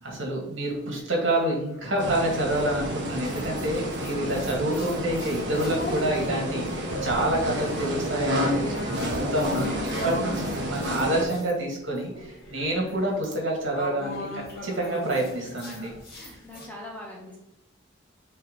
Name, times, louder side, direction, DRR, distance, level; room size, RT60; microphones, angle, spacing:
voice 1, 0.0-15.9, right 1 dB, 75° right, -2 dB, 2.2 m, -28 dB
sound 1, 0.7-2.1 2.6-11.5 11.9-16.7, left 1 dB, 50° left, 2.4 m, -38 dB
sound 2, 2.0-11.2, equal, 60° right, 1.5 m, -30 dB
voice 2, 15.8-17.4, left 1 dB, 10° left, -2 dB, 1.0 m, -43 dB
5.6 x 4.2 x 4.1 m, 0.85 s
head